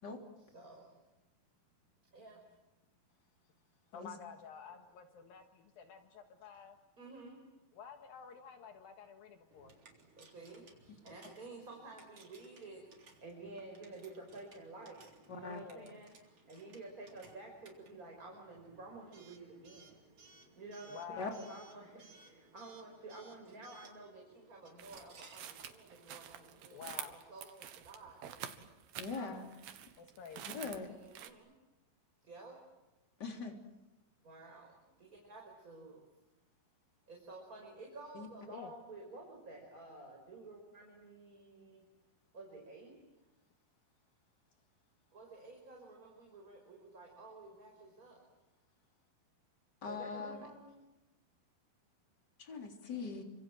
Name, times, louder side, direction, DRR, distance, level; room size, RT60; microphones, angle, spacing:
voice 1, 0.4-1.0 2.1-2.4 7.0-7.4 10.2-16.1 16.5-20.0 20.6-28.5 29.3-29.6 30.8-31.5 32.2-32.6 34.2-36.0 37.1-41.8 42.3-43.0 45.1-48.2 49.9-50.8, right 2 dB, 20° right, 1 dB, 5.2 m, -52 dB
voice 2, 3.9-6.8 7.7-9.8 15.4-16.0 20.9-21.4 26.7-27.2 30.0-30.6 38.5-38.7, left 7 dB, 70° left, 6 dB, 3.1 m, -50 dB
Coin (dropping) / Alarm, 9.5-27.0, right 3 dB, 40° right, 4.4 m, -62 dB
voice 3, 15.3-15.6 21.2-21.3 29.0-29.5 30.4-30.9 33.2-33.5 38.1-38.3 49.8-50.5 52.4-53.2, left 4 dB, 25° left, 4 dB, 3.7 m, -41 dB
Steps on leaf, 24.8-31.3, right 10 dB, 75° right, 3.4 m, -48 dB
30.0 x 26.0 x 7.7 m, 1.0 s
omnidirectional pair, 4.6 m